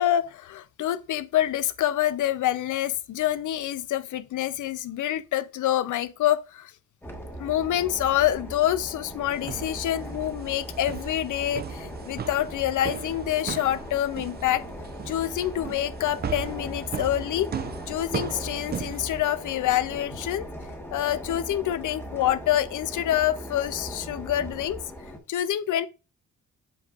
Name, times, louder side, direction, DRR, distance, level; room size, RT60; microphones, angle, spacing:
voice 1, 0.0-6.7 7.4-14.6 15.1-17.5 17.9-20.5 20.9-24.8 25.3-25.9, left 12 dB, 60° left, 0.6 m, -26 dB
sound 1, 7.0-25.2, equal, 5° left, 1.1 m, -39 dB
sound 2, 9.3-19.6, right 7 dB, 30° right, 0.4 m, -37 dB
7.7 x 5.2 x 2.4 m
cardioid pair, 130°, 34 cm